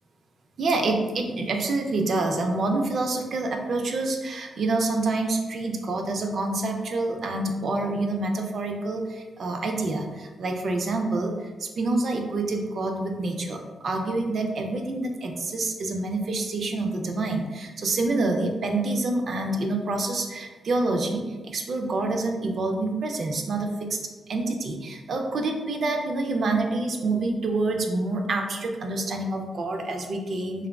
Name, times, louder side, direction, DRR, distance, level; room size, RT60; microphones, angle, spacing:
voice 1, 0.6-13.6 13.8-24.0 24.3-30.7, right 2 dB, 60° right, 3 dB, 0.4 m, -27 dB
3.4 x 2.3 x 2.2 m, 1.3 s
cardioid pair, 80°, 0 cm